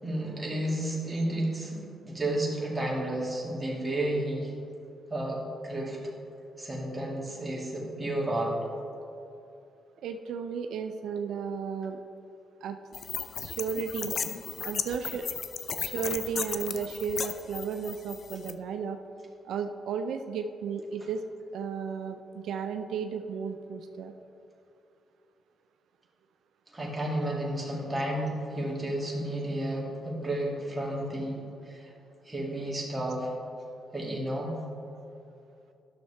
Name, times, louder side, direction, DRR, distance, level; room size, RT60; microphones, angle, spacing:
voice 1, 0.0-4.5 5.1-5.4 5.6-6.0 6.6-8.5 26.7-31.9 32.2-33.3 33.9-34.5, right 1 dB, 15° right, -4 dB, 2.2 m, -32 dB
voice 2, 10.0-12.0 12.6-12.8 13.4-14.2 14.6-15.3 15.8-19.0 19.4-21.2 21.5-24.1, right 6 dB, 80° right, 7 dB, 0.4 m, -34 dB
sound 1, 12.9-18.5, left 6 dB, 55° left, 0.4 m, -35 dB
12.0 x 6.5 x 3.3 m, 2.7 s
cardioid pair, 100°, 0 cm